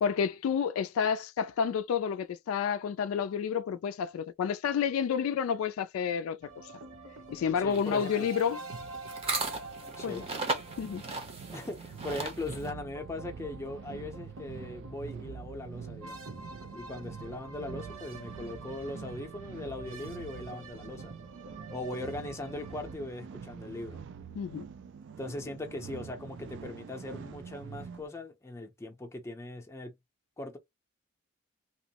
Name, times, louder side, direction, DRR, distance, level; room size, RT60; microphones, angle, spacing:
voice 1, 0.0-6.5 7.3-8.6 10.0-10.2 10.8-11.0 24.4-24.7, left 7 dB, 80° left, 0.3 m, -30 dB
sound 1, 6.4-22.9, right 2 dB, 70° right, 1.0 m, -47 dB
voice 2, 7.6-8.3 10.0-10.3 11.5-16.3 16.7-21.1 21.7-24.0 25.2-29.9 30.4-30.6, left 2 dB, 15° left, 0.5 m, -40 dB
sound 2, 7.7-12.7, right 3 dB, 30° right, 0.7 m, -36 dB
sound 3, 8.6-28.1, right 6 dB, 55° right, 0.3 m, -46 dB
2.9 x 2.0 x 2.8 m
head